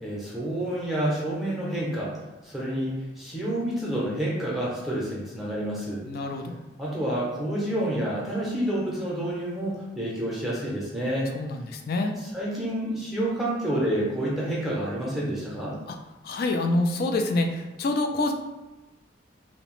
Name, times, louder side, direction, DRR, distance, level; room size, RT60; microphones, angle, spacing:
voice 1, 0.0-2.1 2.4-6.0 6.8-11.3 12.3-15.8, right 1 dB, ahead, -6 dB, 0.7 m, -29 dB
voice 2, 6.0-6.6 11.3-12.2 15.9-16.0 16.2-18.3, left 2 dB, 55° left, 4 dB, 0.3 m, -26 dB
2.8 x 2.1 x 3.0 m, 1.1 s
head